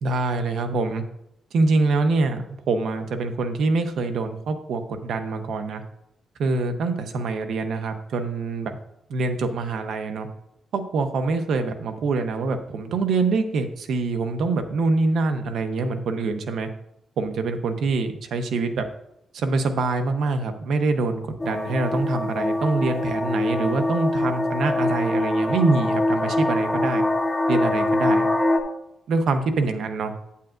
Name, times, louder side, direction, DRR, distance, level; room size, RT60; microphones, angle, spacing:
voice 1, 0.0-1.0 1.5-5.8 6.4-8.7 9.1-10.3 10.7-16.7 17.2-18.8 19.3-27.0 27.5-28.3 29.1-30.3, right 3 dB, 75° right, 7 dB, 0.9 m, -25 dB
sound 1, 21.4-28.6, left 1 dB, 15° left, 0.8 m, -23 dB
9.0 x 8.4 x 2.5 m, 0.79 s
cardioid pair, 115°, 0 cm